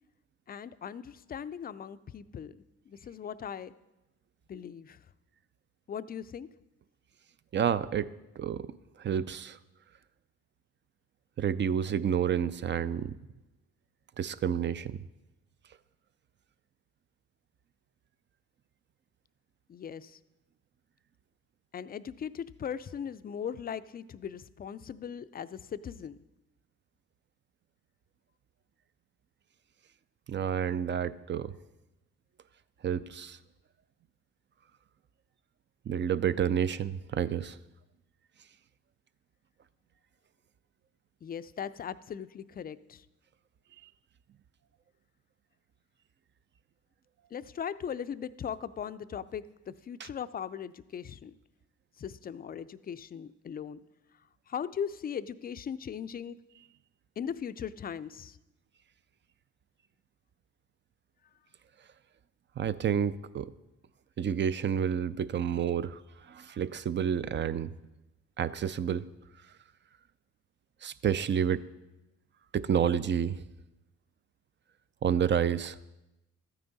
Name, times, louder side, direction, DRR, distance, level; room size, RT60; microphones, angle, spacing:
voice 1, 0.5-2.6 2.9-3.7 4.5-5.0 5.9-6.5 19.7-20.2 21.7-26.2 41.2-43.0 47.3-51.4 52.0-53.8 54.5-56.4 57.2-58.4, left 8 dB, 30° left, 15 dB, 0.4 m, -39 dB
voice 2, 7.5-8.7 9.0-9.6 11.4-13.1 14.2-15.0 30.3-31.5 32.8-33.4 35.9-37.6 50.0-50.1 62.6-63.5 64.2-66.0 66.3-67.7 68.4-69.0 70.8-71.6 72.5-73.4 75.0-75.8, right 8 dB, 40° right, 15 dB, 0.4 m, -29 dB
13.0 x 9.4 x 4.0 m, 0.98 s
cardioid pair, 90°, 30 cm